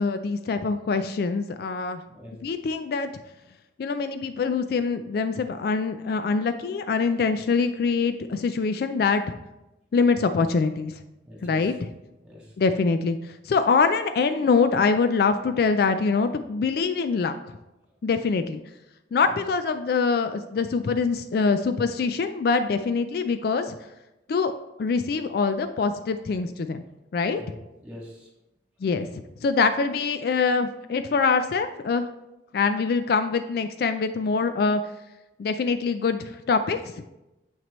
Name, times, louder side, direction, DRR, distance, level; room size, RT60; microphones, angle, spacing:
voice 1, 0.0-2.0 2.4-3.1 3.8-9.2 9.9-11.0 11.4-11.7 12.6-17.3 18.0-18.6 19.1-23.8 24.3-24.5 24.8-26.8 27.1-27.4 28.8-32.1 32.5-34.8 35.4-36.9, left 4 dB, 60° left, 9 dB, 0.3 m, -24 dB
voice 2, 2.1-2.5 11.2-11.7 12.2-12.5 19.2-19.4 27.4-27.6 27.8-28.3, equal, 5° right, -4 dB, 1.9 m, -43 dB
7.4 x 6.0 x 3.1 m, 0.96 s
head